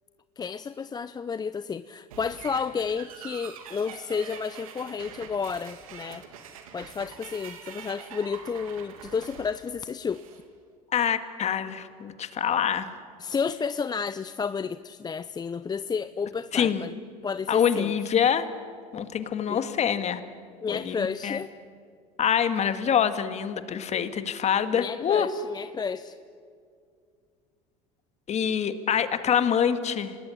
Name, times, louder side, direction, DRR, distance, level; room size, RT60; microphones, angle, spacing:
voice 1, 0.4-6.2 6.7-10.2 13.2-16.9 17.2-17.9 19.5-19.6 20.6-21.5 24.7-26.2, left 5 dB, 25° left, 14 dB, 0.6 m, -31 dB
sound 1, 2.1-10.4, right 7 dB, 90° right, 2.7 m, -45 dB
voice 2, 10.9-12.9 16.5-16.9 17.5-18.5 18.9-20.2 20.7-21.4 22.2-25.3 28.3-30.1, left 8 dB, 40° left, 10 dB, 2.0 m, -25 dB
26.5 x 19.5 x 10.0 m, 2.3 s
hypercardioid pair, 85°, 17 cm